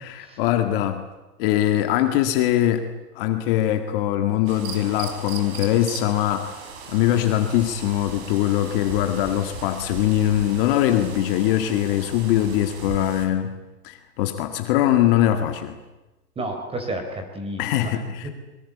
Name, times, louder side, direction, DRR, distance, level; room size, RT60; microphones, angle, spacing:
voice 1, 0.0-1.1 1.4-2.9 3.2-6.5 6.9-13.6 13.8-15.8 17.6-18.3, left 12 dB, 35° left, 7 dB, 1.9 m, -22 dB
sound 1, 4.5-13.3, right 6 dB, 40° right, 4.7 m, -38 dB
voice 2, 16.4-18.3, right 1 dB, 10° right, 6 dB, 3.9 m, -32 dB
24.5 x 23.0 x 8.4 m, 1.1 s
hypercardioid pair, 160°, 46 cm